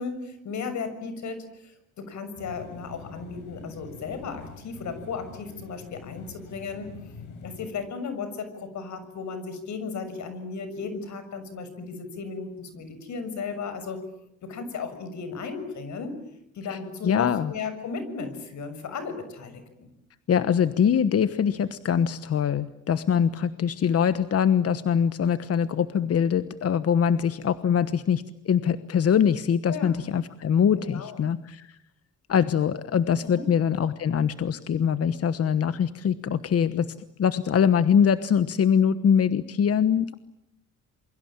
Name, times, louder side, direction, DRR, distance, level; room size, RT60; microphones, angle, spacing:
voice 1, 0.0-7.1 7.4-14.0 14.4-16.1 16.5-19.9 29.7-30.0 30.8-31.3 33.2-33.4, left 5 dB, 70° left, 10 dB, 6.7 m, -35 dB
sound 1, 2.4-7.7, left 5 dB, 85° left, 6.9 m, -45 dB
voice 2, 17.0-17.5 20.3-31.8 32.3-36.9 37.2-40.1, left 8 dB, 50° left, 13 dB, 1.2 m, -23 dB
28.0 x 23.0 x 8.9 m, 0.77 s
cardioid pair, 90°, 30 cm